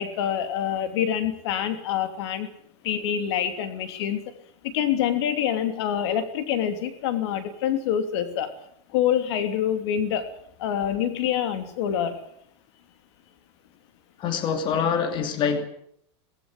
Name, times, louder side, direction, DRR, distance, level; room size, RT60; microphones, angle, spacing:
voice 1, 0.0-2.5 2.8-4.2 4.6-8.5 8.9-10.3 10.6-12.2, left 9 dB, 65° left, 9 dB, 3.0 m, -26 dB
voice 2, 14.2-15.7, left 6 dB, 30° left, 7 dB, 2.6 m, -25 dB
19.0 x 16.0 x 9.8 m, 0.70 s
supercardioid pair, 145°, 15 cm